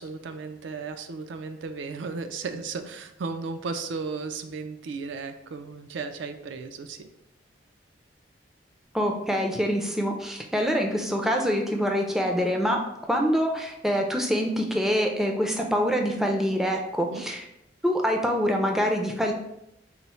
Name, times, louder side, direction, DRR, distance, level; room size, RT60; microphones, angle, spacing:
voice 1, 0.0-7.1 17.1-17.2, right 4 dB, 90° right, 8 dB, 0.4 m, -35 dB
voice 2, 8.9-12.8 13.1-17.4 17.8-19.3, equal, ahead, 1 dB, 0.4 m, -25 dB
4.0 x 2.0 x 4.3 m, 0.83 s
head